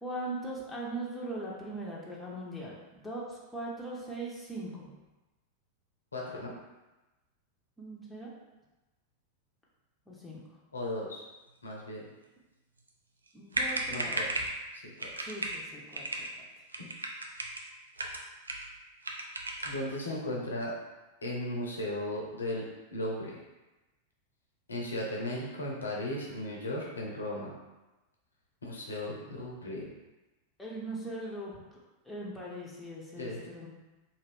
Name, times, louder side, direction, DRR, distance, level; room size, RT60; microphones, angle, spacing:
voice 1, 0.0-4.9 7.8-8.3 10.1-10.4 13.3-14.2 15.2-16.1 20.0-20.5 30.6-31.8 32.0-33.7, right 1 dB, 5° left, -5 dB, 0.7 m, -40 dB
voice 2, 6.1-6.5 10.7-11.2 11.6-12.1 13.9-14.3 14.7-15.1 16.8-16.9 19.6-20.7 21.2-22.6 22.9-23.4 24.7-27.5 28.6-29.9 33.2-33.5, left 1 dB, 75° left, -2 dB, 0.6 m, -36 dB
sound 1, 13.3-13.4 13.5-14.6 15.0-15.6 15.9-16.3 16.7-17.6 18.0-18.7 19.0-19.8, right 2 dB, 75° right, 0.3 m, -35 dB
2.5 x 2.5 x 3.3 m, 1.1 s
figure-of-eight pair, 90°, 0 cm